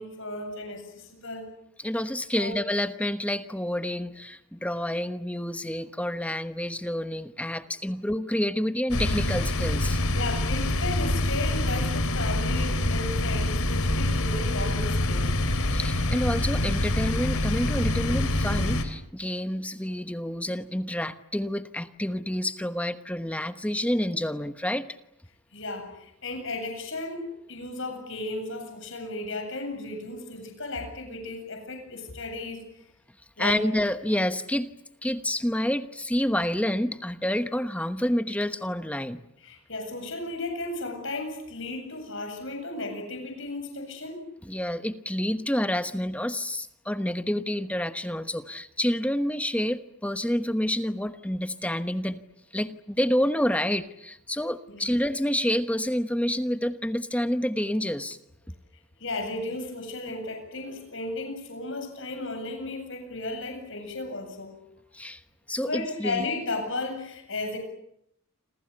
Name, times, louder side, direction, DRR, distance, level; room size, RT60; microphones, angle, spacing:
voice 1, 0.0-1.5 2.4-2.6 10.1-15.3 25.5-32.6 33.4-33.7 39.4-44.3 54.7-54.9 59.0-64.6 65.6-67.6, left 2 dB, 60° left, 5 dB, 7.9 m, -34 dB
voice 2, 1.8-10.0 15.7-24.9 33.4-34.7 35.0-39.2 44.4-52.2 52.5-58.2 64.9-65.2 65.5-66.3, left 1 dB, 5° left, 10 dB, 1.1 m, -28 dB
sound 1, 8.9-18.9, left 1 dB, 80° left, 3.1 m, -26 dB
28.5 x 27.5 x 6.9 m, 0.74 s
head